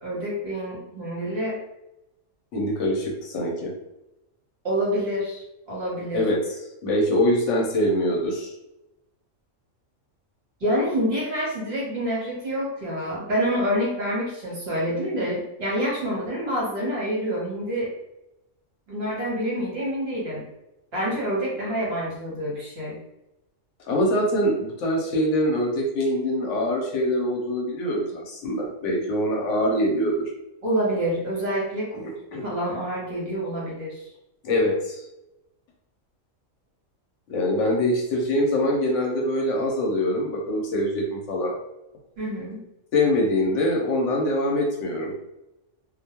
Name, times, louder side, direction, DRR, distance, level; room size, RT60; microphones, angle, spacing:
voice 1, 0.0-1.6 4.6-6.2 10.6-17.9 18.9-20.5 20.9-23.0 30.6-32.1 32.4-34.1 42.2-42.6, equal, 55° right, -5 dB, 1.1 m, -27 dB
voice 2, 2.5-3.7 6.1-6.4 6.8-8.5 23.9-30.3 32.3-32.5 34.4-35.0 37.3-41.5 42.9-45.1, left 1 dB, 70° left, 0 dB, 0.9 m, -24 dB
2.4 x 2.1 x 2.8 m, 0.90 s
omnidirectional pair, 1.3 m